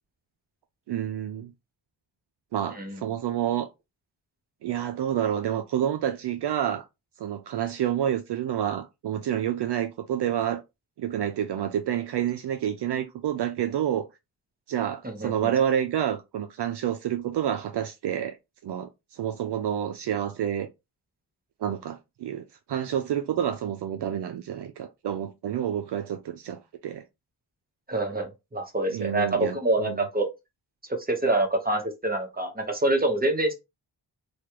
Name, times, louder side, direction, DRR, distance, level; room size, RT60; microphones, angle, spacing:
voice 1, 0.9-1.5 2.5-3.7 4.6-6.8 7.2-10.6 11.0-14.1 14.7-18.4 18.6-20.7 21.6-27.0 28.9-29.6 29.8-30.0, right 10 dB, 65° right, 0.5 m, -28 dB
voice 2, 15.0-15.5 27.9-30.3 31.1-33.5, right 2 dB, 20° right, 1.1 m, -26 dB
3.1 x 2.3 x 3.0 m
cardioid pair, 55°, 45 cm